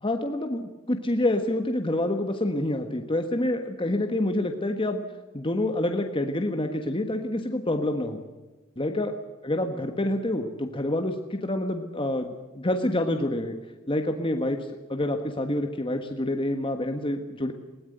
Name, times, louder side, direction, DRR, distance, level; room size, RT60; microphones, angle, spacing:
voice 1, 0.0-5.0 5.3-8.2 8.8-9.1 9.4-13.5 13.9-14.6 14.9-17.5, left 1 dB, 25° left, 5 dB, 1.4 m, -27 dB
21.0 x 18.0 x 8.0 m, 1.2 s
head